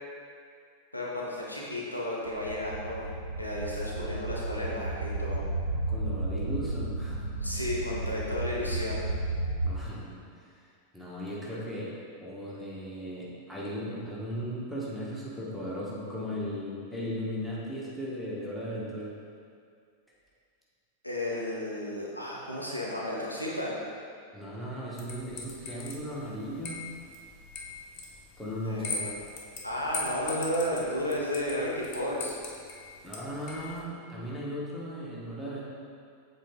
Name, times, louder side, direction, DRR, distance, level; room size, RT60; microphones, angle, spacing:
voice 1, 0.9-3.1 3.4-5.4 7.4-9.1 21.0-23.8 28.6-29.1 29.6-32.4, left 1 dB, 85° left, -5 dB, 1.0 m, -33 dB
sound 1, 2.2-9.8, right 2 dB, 75° right, 0.7 m, -33 dB
voice 2, 5.9-7.3 9.6-10.5 10.9-11.9 12.2-19.1 24.3-26.8 28.4-29.1 33.0-35.6, equal, ahead, -7 dB, 1.4 m, -37 dB
sound 2, 25.0-33.8, left 4 dB, 40° left, 0.9 m, -41 dB
7.3 x 3.9 x 3.7 m, 2.2 s
figure-of-eight pair, 90°, 0 cm